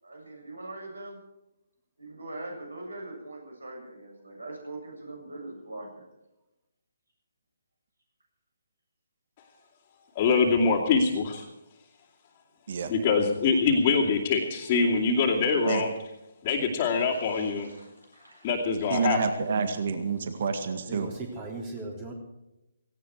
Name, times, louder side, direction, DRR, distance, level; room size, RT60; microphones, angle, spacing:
voice 1, 0.0-1.2 2.0-6.0 16.9-18.5 18.9-19.3 19.7-19.8, right 2 dB, 70° right, 1 dB, 7.8 m, -42 dB
voice 2, 10.1-11.4 12.9-15.9 16.4-17.7 18.4-19.2, left 4 dB, 25° left, -6 dB, 2.6 m, -24 dB
voice 3, 18.9-21.1, right 5 dB, 45° right, 8 dB, 1.8 m, -28 dB
voice 4, 20.9-22.1, right 2 dB, 25° right, 1 dB, 3.4 m, -37 dB
18.0 x 17.0 x 4.7 m, 0.92 s
figure-of-eight pair, 140°, 0 cm